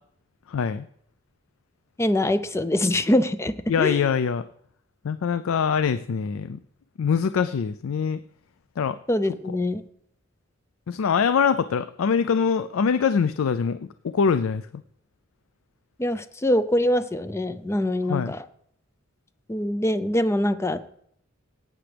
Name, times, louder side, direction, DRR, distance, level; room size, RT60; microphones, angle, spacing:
voice 1, 0.5-0.9 3.7-4.4 5.0-6.6 7.0-8.2 8.8-9.0 10.9-13.8 14.1-14.8 18.1-18.3, left 6 dB, 90° left, 13 dB, 0.4 m, -23 dB
voice 2, 2.0-4.1 9.1-9.8 16.0-18.4 19.5-20.9, left 1 dB, 15° left, 12 dB, 0.5 m, -24 dB
17.5 x 8.8 x 3.4 m, 0.68 s
head